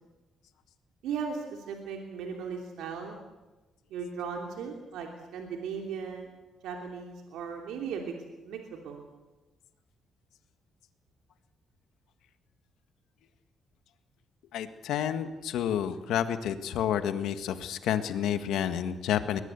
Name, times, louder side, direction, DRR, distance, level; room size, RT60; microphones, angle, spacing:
voice 1, 1.0-3.2 3.9-6.3 6.6-8.1 8.4-9.0, right 6 dB, 85° right, 2 dB, 3.1 m, -37 dB
voice 2, 14.5-19.4, left 9 dB, 85° left, 9 dB, 1.7 m, -30 dB
22.0 x 20.0 x 8.3 m, 1.1 s
cardioid pair, 90°, 0 cm